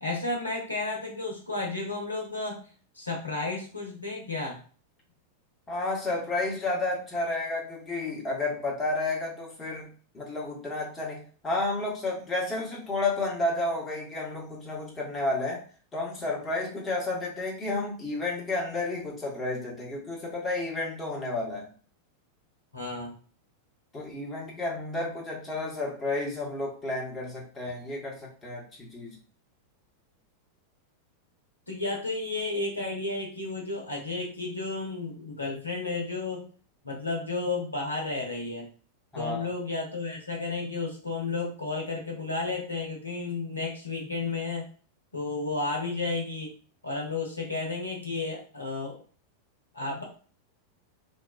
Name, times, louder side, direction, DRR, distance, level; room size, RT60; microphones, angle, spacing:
voice 1, 0.0-2.6 2.9-4.6 22.7-23.1 31.7-36.5 36.8-38.7 39.1-44.6 45.1-46.5 46.8-49.0 49.7-50.0, left 3 dB, 80° left, -1 dB, 0.8 m, -32 dB
voice 2, 5.7-15.6 15.9-21.7 23.9-29.2 39.1-39.5, left 2 dB, 20° left, -3 dB, 1.0 m, -31 dB
2.5 x 2.2 x 2.3 m, 0.40 s
figure-of-eight pair, 90°, 0 cm